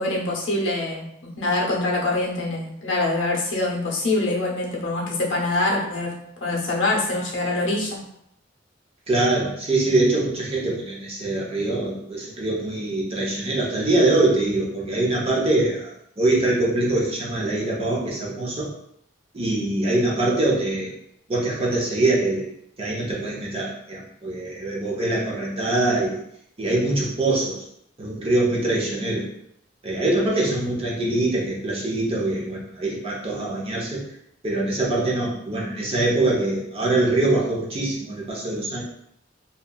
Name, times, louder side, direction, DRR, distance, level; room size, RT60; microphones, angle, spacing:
voice 1, 0.0-6.1 6.4-8.0, left 2 dB, 85° left, -2 dB, 0.6 m, -24 dB
voice 2, 9.1-15.9 16.2-18.7 19.3-20.9 21.3-22.5 22.8-26.2 26.6-27.6 28.0-29.2 29.8-34.0 34.4-38.8, right 2 dB, 30° right, -4 dB, 0.6 m, -23 dB
2.8 x 2.2 x 2.2 m, 0.74 s
head